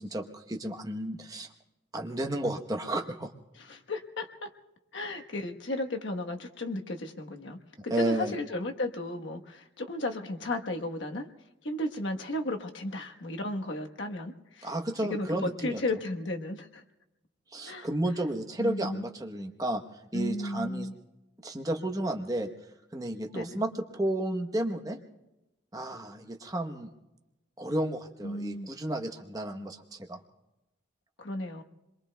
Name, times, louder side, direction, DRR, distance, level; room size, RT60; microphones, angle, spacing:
voice 1, 0.0-1.5 1.9-3.3 7.9-8.3 14.6-15.8 17.5-19.8 20.1-20.9 21.4-22.5 22.9-25.0 25.7-26.9 27.6-30.2, right 1 dB, 20° right, 4 dB, 0.9 m, -32 dB
voice 2, 3.6-4.5 4.9-7.6 7.8-11.3 11.6-14.7 15.0-16.8 17.7-17.9 18.6-19.0 20.1-20.9 23.3-23.6 28.2-28.7 31.2-31.6, left 1 dB, 80° left, 3 dB, 1.2 m, -34 dB
29.0 x 22.5 x 2.2 m, 0.98 s
head